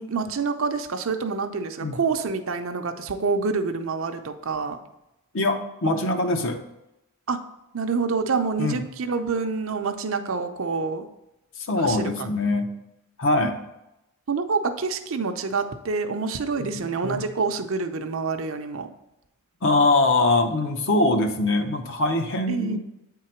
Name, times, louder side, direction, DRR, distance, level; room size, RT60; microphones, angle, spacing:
voice 1, 0.0-4.8 7.3-7.4 7.7-11.1 11.8-12.3 13.4-13.5 14.3-18.9 22.5-22.8, right 4 dB, 60° right, 8 dB, 0.6 m, -27 dB
voice 2, 5.3-6.6 8.6-8.9 11.6-12.7 13.2-13.6 16.6-17.3 19.6-22.8, left 2 dB, 60° left, 5 dB, 0.8 m, -23 dB
8.5 x 3.8 x 4.4 m, 0.90 s
head